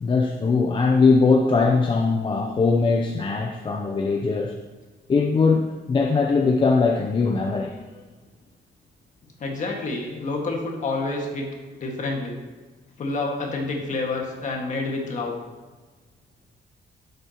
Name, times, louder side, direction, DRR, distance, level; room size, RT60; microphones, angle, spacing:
voice 1, 0.0-4.6 5.1-8.0, left 4 dB, 30° left, 1 dB, 0.6 m, -21 dB
voice 2, 9.4-11.5 11.8-12.4 13.0-15.4, left 3 dB, 45° left, 0 dB, 1.8 m, -28 dB
11.5 x 8.1 x 3.0 m, 1.3 s
cardioid pair, 155°, 18 cm